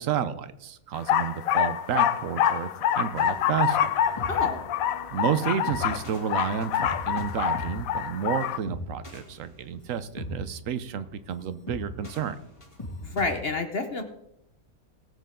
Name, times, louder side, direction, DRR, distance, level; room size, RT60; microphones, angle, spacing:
voice 1, 0.0-2.7 2.9-3.9 5.1-12.4, right 8 dB, 65° right, 13 dB, 1.1 m, -30 dB
sound 1, 0.9-8.6, left 10 dB, 75° left, 1.0 m, -26 dB
sound 2, 3.2-13.4, left 1 dB, 20° left, 2.0 m, -41 dB
voice 2, 4.3-4.6 13.0-14.0, left 3 dB, 45° left, 6 dB, 1.1 m, -29 dB
19.5 x 8.0 x 3.7 m, 0.81 s
omnidirectional pair, 1.5 m